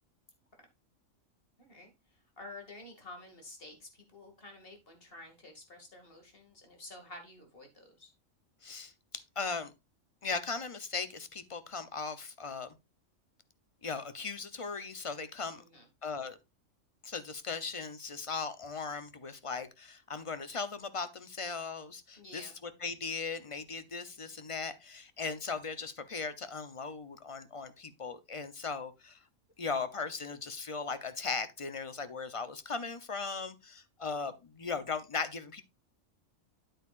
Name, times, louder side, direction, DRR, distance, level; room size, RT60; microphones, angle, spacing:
voice 1, 1.6-8.1 15.5-15.9 22.2-22.5, left 2 dB, 45° left, 2.5 m, -50 dB
voice 2, 8.6-8.9 9.4-9.7 10.2-12.7 13.8-15.6 16.0-16.4 17.0-22.5 22.8-29.2 29.6-35.6, left 4 dB, 30° left, 0.7 m, -38 dB
9.3 x 8.3 x 2.5 m
omnidirectional pair, 1.3 m